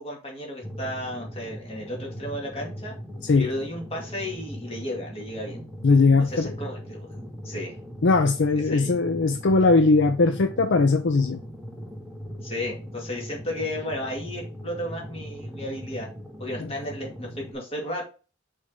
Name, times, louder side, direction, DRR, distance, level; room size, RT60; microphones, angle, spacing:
voice 1, 0.0-2.9 3.4-5.6 6.2-7.1 7.4-7.8 8.7-8.9 12.4-16.1 16.4-18.1, left 1 dB, 30° left, 2.2 m, -33 dB
sound 1, 0.6-17.5, equal, ahead, 1.1 m, -39 dB
voice 2, 5.8-6.5 8.0-11.4 16.6-16.7, left 3 dB, 60° left, 0.5 m, -20 dB
6.3 x 4.7 x 3.7 m
head